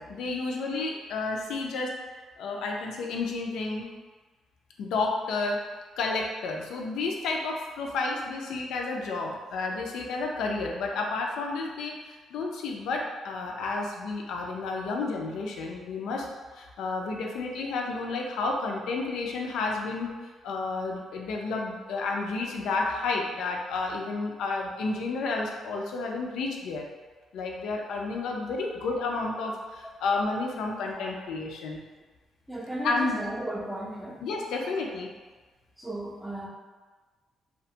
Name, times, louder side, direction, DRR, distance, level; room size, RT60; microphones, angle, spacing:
voice 1, 0.0-3.9 4.8-5.7 6.0-16.3 16.5-20.1 20.4-26.9 27.3-31.8 32.8-33.2 34.2-35.1, left 3 dB, 85° left, 1 dB, 0.4 m, -31 dB
voice 2, 32.5-34.2 35.8-36.5, right 1 dB, 10° right, -3 dB, 0.5 m, -35 dB
2.4 x 2.2 x 2.7 m, 1.3 s
cardioid pair, 90°, 0 cm